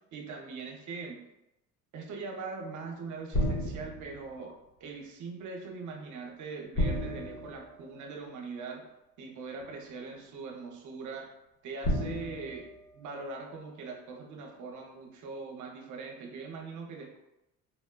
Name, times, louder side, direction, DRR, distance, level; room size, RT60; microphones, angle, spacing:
voice 1, 0.1-1.2 1.9-4.5 4.8-8.8 9.2-11.3 11.6-12.7 12.9-17.2, right 4 dB, 55° right, 1 dB, 0.7 m, -41 dB
sound 1, 3.3-4.3 6.7-8.4 9.6-9.7 11.8-13.6, equal, 55° left, 1.1 m, -33 dB
4.1 x 2.1 x 2.2 m, 0.91 s
cardioid pair, 95°, 36 cm